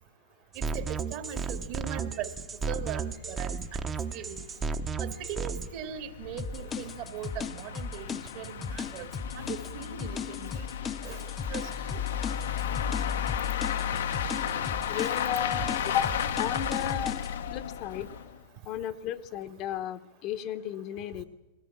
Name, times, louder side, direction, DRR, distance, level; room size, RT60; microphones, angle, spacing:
sound 1, 0.5-5.7, right 5 dB, 20° right, 0.9 m, -33 dB
voice 1, 0.6-2.3 2.7-4.4 5.0-9.1 9.3-10.7 11.0-12.0, right 10 dB, 55° right, 8 dB, 2.2 m, -40 dB
sound 2, 2.0-2.1 2.4-2.5 2.9-3.0 3.3-3.4 4.0-18.4, left 9 dB, 80° left, 1.0 m, -34 dB
sound 3, 6.4-17.3, left 6 dB, 20° left, 0.6 m, -37 dB
voice 2, 14.9-16.1 16.4-17.1 17.5-18.1 18.6-21.2, left 11 dB, 40° left, 10 dB, 1.0 m, -33 dB
21.0 x 17.0 x 7.4 m, 1.1 s
hypercardioid pair, 135°, 0 cm